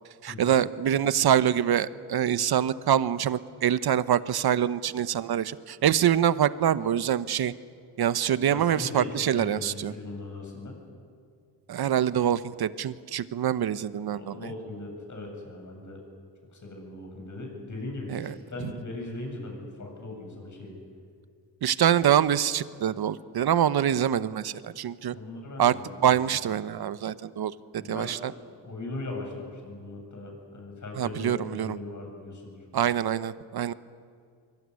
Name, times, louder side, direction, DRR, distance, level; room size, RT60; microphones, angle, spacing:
voice 1, 0.2-7.5 8.0-9.9 11.7-14.4 18.1-18.3 21.6-25.2 25.6-25.7 26.0-28.3 31.0-31.8 32.7-33.7, right 10 dB, 55° right, 15 dB, 1.0 m, -25 dB
voice 2, 8.5-10.8 14.1-16.0 16.5-20.8 25.1-26.1 27.8-32.6, left 2 dB, 40° left, 2 dB, 8.0 m, -39 dB
24.5 x 24.0 x 9.7 m, 2.2 s
cardioid pair, 125°, 44 cm